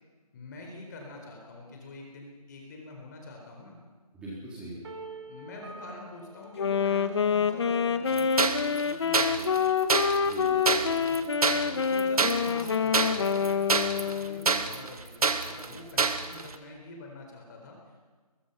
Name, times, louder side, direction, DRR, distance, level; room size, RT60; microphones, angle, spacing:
voice 1, 0.3-3.8 5.2-9.8 11.4-18.1, left 2 dB, 30° left, 1 dB, 4.1 m, -46 dB
voice 2, 4.1-4.8 10.2-11.2 15.7-15.8, right 1 dB, 5° right, -7 dB, 3.7 m, -43 dB
sound 1, 4.8-7.8, right 3 dB, 40° right, 2.9 m, -46 dB
Wind instrument woodwind instrument, 6.6-14.6, left 6 dB, 45° left, 1.2 m, -27 dB
sound 2, 8.1-16.5, right 4 dB, 65° right, 1.6 m, -27 dB
21.5 x 21.5 x 5.6 m, 1.4 s
figure-of-eight pair, 165°, 20 cm